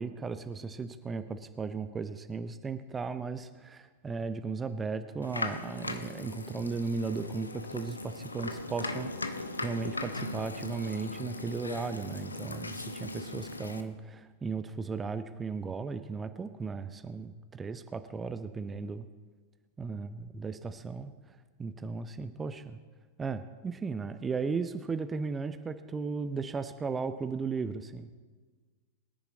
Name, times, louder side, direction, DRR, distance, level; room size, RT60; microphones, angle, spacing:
voice 1, 0.0-9.1 9.6-19.1 19.8-20.1 20.3-21.1 21.6-22.8 23.2-28.1, right 4 dB, 15° right, 11 dB, 0.7 m, -36 dB
sound 1, 5.2-13.8, left 2 dB, 80° left, 0.9 m, -38 dB
23.0 x 10.0 x 3.9 m, 1.4 s
figure-of-eight pair, 90°, 0 cm